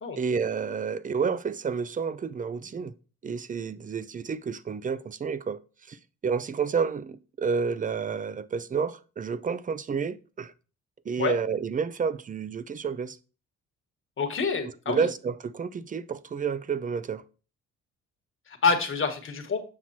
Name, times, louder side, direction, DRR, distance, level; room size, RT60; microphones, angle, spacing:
voice 1, 0.2-2.9 3.2-5.6 5.9-6.0 6.2-10.5 11.1-13.2 14.9-17.2, right 6 dB, 25° right, 0.5 m, -30 dB
voice 2, 14.2-15.1 18.5-19.6, left 5 dB, 40° left, 1.4 m, -27 dB
7.6 x 5.9 x 2.8 m
cardioid pair, 90°, 30 cm